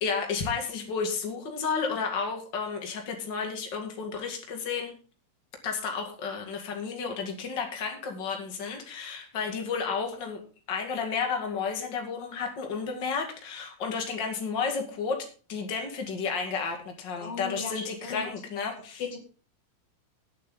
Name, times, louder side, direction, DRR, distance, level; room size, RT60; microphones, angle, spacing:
voice 1, 0.0-5.0 5.6-10.4 10.7-15.2 15.5-19.0, left 5 dB, 80° left, 2 dB, 1.0 m, -32 dB
voice 2, 17.2-18.3 19.0-19.2, left 5 dB, 50° left, 3 dB, 1.8 m, -36 dB
18.5 x 7.5 x 3.8 m, 0.37 s
omnidirectional pair, 5.9 m